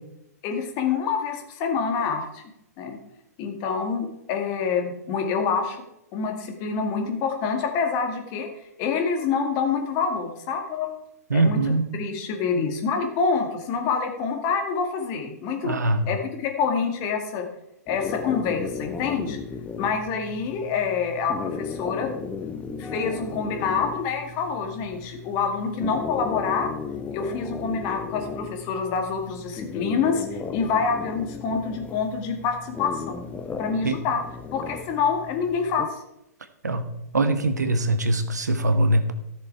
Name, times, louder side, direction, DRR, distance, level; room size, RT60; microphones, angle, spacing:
voice 1, 0.4-2.4 2.8-3.0 3.4-5.8 6.1-8.5 8.8-10.9 11.3-15.8 16.1-17.5 17.9-19.4 19.8-22.1 22.8-26.7 27.1-33.2 33.6-34.2 34.5-36.0, left 5 dB, 40° left, 4 dB, 2.2 m, -26 dB
voice 2, 11.3-11.9 15.6-16.0 33.8-34.0 36.6-36.9 37.1-39.1, right 2 dB, 85° right, 9 dB, 1.2 m, -22 dB
sound 1, 17.9-35.9, left 5 dB, 15° left, 0.9 m, -36 dB
14.0 x 6.7 x 4.7 m, 0.84 s
figure-of-eight pair, 115°, 9 cm